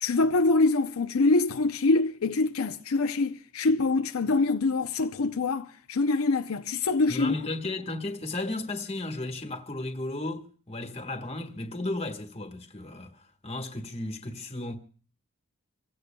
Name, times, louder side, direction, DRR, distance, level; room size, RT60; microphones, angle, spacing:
voice 1, 0.0-7.3, left 3 dB, 80° left, 0.6 m, -25 dB
voice 2, 7.1-14.8, left 2 dB, 30° left, 1.6 m, -34 dB
26.5 x 16.0 x 2.3 m
head